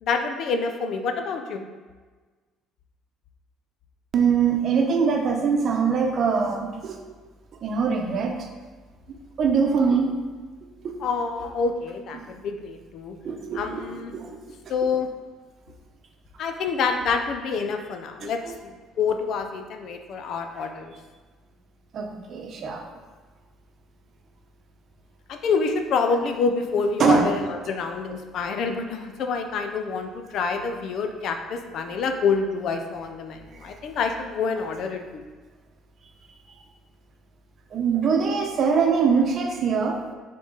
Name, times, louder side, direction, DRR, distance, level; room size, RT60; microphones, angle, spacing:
voice 1, 0.0-1.7 11.0-13.2 13.5-14.1 14.7-15.1 16.4-20.9 25.3-35.2, left 5 dB, 50° left, 6 dB, 0.6 m, -27 dB
voice 2, 4.1-7.0 7.6-8.4 9.4-10.1 10.8-10.9 13.2-13.8 14.1-14.3 18.2-18.3 21.9-22.8 27.0-27.3 37.7-40.0, right 5 dB, 40° right, 2 dB, 0.9 m, -22 dB
6.6 x 3.8 x 4.0 m, 1.4 s
cardioid pair, 145°, 0 cm